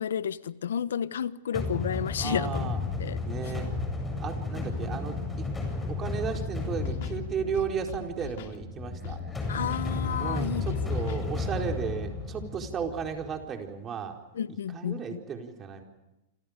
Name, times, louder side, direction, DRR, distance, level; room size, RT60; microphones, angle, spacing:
voice 1, 0.0-2.7 3.0-3.2 9.5-10.8 14.3-15.2, left 8 dB, 80° left, 1.0 m, -31 dB
sound 1, 1.5-13.4, left 3 dB, 10° left, 7.8 m, -33 dB
voice 2, 2.2-2.8 3.3-3.7 4.2-5.5 5.9-9.2 10.2-14.2 14.7-15.8, right 7 dB, 25° right, 4.5 m, -34 dB
Scratching (performance technique), 6.3-6.5 6.8-7.2 7.5-8.6 9.0-9.2 9.5-9.9 10.4-11.3, left 11 dB, 60° left, 3.0 m, -42 dB
28.0 x 27.0 x 5.2 m
hypercardioid pair, 120°, 0 cm